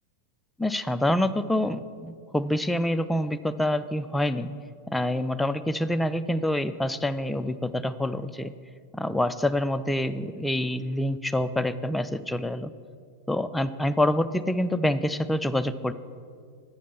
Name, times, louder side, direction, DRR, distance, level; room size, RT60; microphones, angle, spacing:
voice 1, 0.6-4.5 4.9-8.5 8.9-12.7 13.3-15.9, left 1 dB, 5° left, 11 dB, 0.3 m, -26 dB
8.4 x 5.1 x 7.0 m, 2.1 s
figure-of-eight pair, 90°, 0 cm